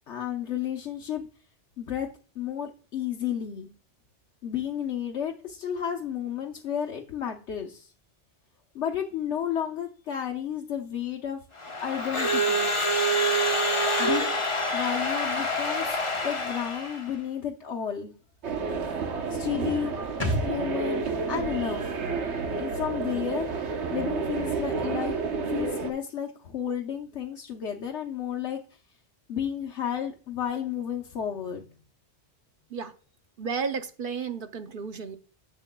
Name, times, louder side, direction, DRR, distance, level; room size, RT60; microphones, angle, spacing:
voice 1, 0.1-1.2 1.8-2.1 2.3-3.7 4.4-7.9 8.7-11.4 11.8-12.7 14.0-16.0 16.2-18.1 19.3-19.9 20.4-21.8 22.6-23.5 23.9-28.6 29.3-31.7, left 9 dB, 75° left, 1.1 m, -32 dB
Crowd / Alarm, 11.6-17.1, equal, 30° left, 0.9 m, -26 dB
sound 1, 18.4-25.9, right 4 dB, 70° right, 1.3 m, -30 dB
sound 2, 20.2-23.7 24.0-24.1, equal, 10° left, 2.7 m, -36 dB
voice 2, 33.4-35.2, right 5 dB, 55° right, 0.8 m, -32 dB
11.0 x 7.4 x 2.2 m
omnidirectional pair, 1.2 m